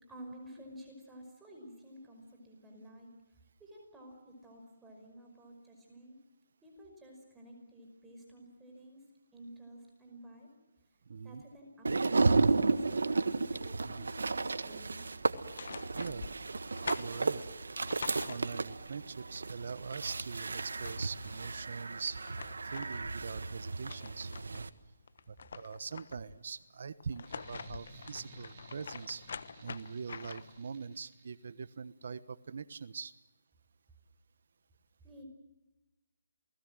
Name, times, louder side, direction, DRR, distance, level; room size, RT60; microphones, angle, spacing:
voice 1, 0.0-3.1 3.6-6.2 6.6-9.0 9.3-10.5 11.2-15.0 35.0-35.2, equal, 10° right, 1 dB, 5.5 m, -52 dB
voice 2, 11.1-11.4 13.8-14.1 15.9-16.3 17.0-17.4 18.2-22.2 22.6-24.7 25.3-29.2 29.6-33.1, right 5 dB, 65° right, 15 dB, 1.2 m, -42 dB
sound 1, 11.8-24.7, right 3 dB, 85° right, 1.5 m, -33 dB
sound 2, 15.3-18.9 20.3-20.4 20.6-21.5 22.0-24.7 25.1-26.4 27.0-30.6, left 5 dB, 65° left, 1.2 m, -46 dB
sound 3, 27.2-31.7, right 2 dB, 40° right, 4.6 m, -55 dB
29.0 x 20.0 x 7.7 m, 1.1 s
hypercardioid pair, 155°, 0 cm